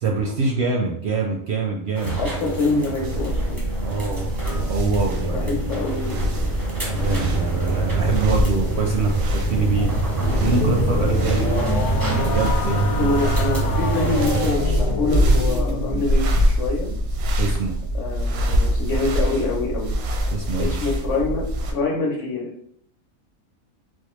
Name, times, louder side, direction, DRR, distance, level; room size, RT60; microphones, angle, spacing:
voice 1, 0.0-2.2 3.8-5.5 6.9-9.9 10.4-13.2 17.4-17.8 20.3-20.7, right 3 dB, 65° right, 1 dB, 0.7 m, -25 dB
sound 1, 2.0-14.5, right 3 dB, 25° right, 0.5 m, -26 dB
voice 2, 2.2-3.6 5.1-6.6 7.1-7.2 13.0-16.3 16.6-16.9 17.9-19.9 20.6-22.5, left 3 dB, 60° left, -1 dB, 1.0 m, -26 dB
sound 2, 3.0-21.7, equal, 90° right, 1.1 m, -24 dB
sound 3, 10.2-16.1, left 4 dB, 85° left, 1.1 m, -28 dB
4.1 x 2.3 x 3.0 m, 0.67 s
omnidirectional pair, 1.5 m